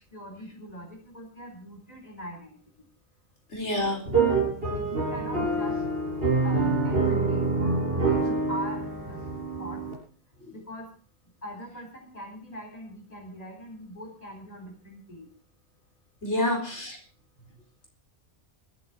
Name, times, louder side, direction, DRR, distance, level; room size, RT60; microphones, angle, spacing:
voice 1, 0.1-2.9 3.7-3.9 4.5-5.8 6.4-9.2 9.6-9.9 10.5-10.9 11.4-15.4 16.3-16.6 17.4-17.5, equal, 35° left, 2 dB, 4.0 m, -42 dB
voice 2, 3.5-4.0 10.4-10.5 16.2-17.0, left 1 dB, 80° left, 2 dB, 4.6 m, -28 dB
sound 1, 4.1-9.9, right 3 dB, 55° right, 4.7 m, -26 dB
21.0 x 8.6 x 5.0 m, 0.42 s
omnidirectional pair, 1.2 m